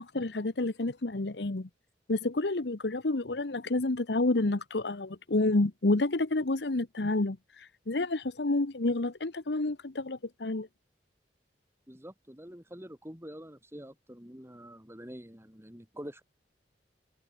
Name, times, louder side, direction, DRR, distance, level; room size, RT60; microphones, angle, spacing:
voice 1, 0.0-1.7 2.1-10.7, left 2 dB, 65° left, 1.1 m, -29 dB
voice 2, 11.9-16.2, equal, 15° right, 7.1 m, -46 dB
head